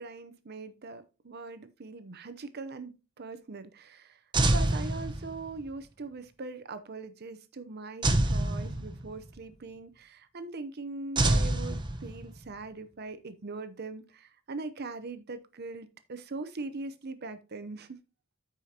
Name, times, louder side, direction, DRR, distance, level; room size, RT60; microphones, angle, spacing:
voice 1, 0.0-2.9 3.2-4.2 4.5-17.9, right 3 dB, 50° right, 0.7 m, -41 dB
sound 1, 4.3-5.6 8.0-9.3 11.2-12.5, right 2 dB, 20° right, 0.9 m, -27 dB
13.5 x 5.0 x 2.8 m
head